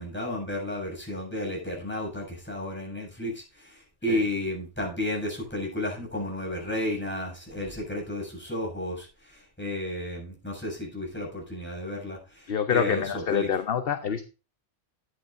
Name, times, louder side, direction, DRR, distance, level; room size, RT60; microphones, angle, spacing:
voice 1, 0.0-13.0 13.3-13.5, left 1 dB, 10° left, -2 dB, 7.2 m, -32 dB
voice 2, 12.5-14.3, left 8 dB, 55° left, 9 dB, 1.0 m, -26 dB
12.5 x 10.5 x 2.6 m, 0.32 s
omnidirectional pair, 1.2 m